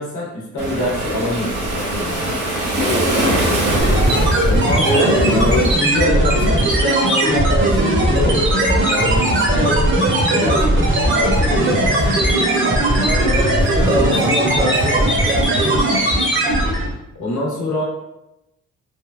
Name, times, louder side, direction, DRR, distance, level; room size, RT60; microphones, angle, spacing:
voice 1, 0.0-2.5 4.4-9.9 10.3-12.8 17.2-17.8, left 1 dB, 80° left, -3 dB, 1.1 m, -24 dB
Waves surf, 0.6-5.8, right 1 dB, 80° right, 1.0 m, -22 dB
voice 2, 2.7-3.2 3.7-4.3 4.8-5.1 13.0-16.4, equal, 15° right, -5 dB, 0.8 m, -25 dB
sound 1, 3.8-17.0, right 1 dB, 40° right, 0.9 m, -17 dB
3.4 x 2.2 x 2.4 m, 0.90 s
cardioid pair, 90°, 30 cm